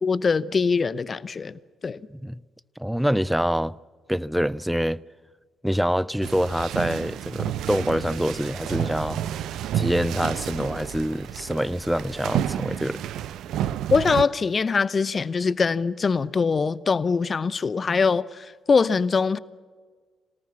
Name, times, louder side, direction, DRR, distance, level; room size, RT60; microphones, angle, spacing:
voice 1, 0.0-2.0 13.9-19.4, left 5 dB, 40° left, 0.8 m, -23 dB
voice 2, 2.8-3.8 4.1-5.0 5.6-9.2 9.7-13.0, equal, ahead, 0.6 m, -25 dB
sound 1, 6.2-14.2, right 11 dB, 60° right, 0.7 m, -30 dB
26.0 x 18.5 x 7.4 m
figure-of-eight pair, 40°, 0 cm